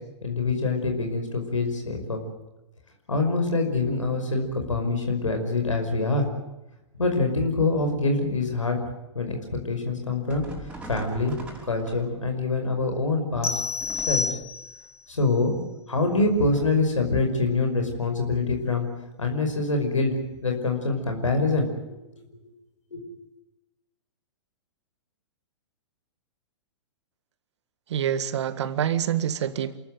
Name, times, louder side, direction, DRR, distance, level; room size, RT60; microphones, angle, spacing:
voice 1, 0.2-2.2 3.1-6.3 7.0-8.8 9.1-10.5 10.9-11.4 11.6-13.6 14.1-14.2 15.1-15.6 15.9-18.9 19.2-20.2 20.4-21.7 22.9-23.1, left 3 dB, 90° left, 4 dB, 5.5 m, -25 dB
sound 1, 10.3-12.4 13.8-14.6 16.2-16.9, right 1 dB, 5° right, 5.7 m, -42 dB
sound 2, 13.4-15.0, left 4 dB, 15° left, 2.1 m, -29 dB
voice 2, 27.9-29.8, right 9 dB, 65° right, 13 dB, 1.8 m, -26 dB
28.0 x 15.0 x 9.1 m, 0.98 s
hypercardioid pair, 115°, 16 cm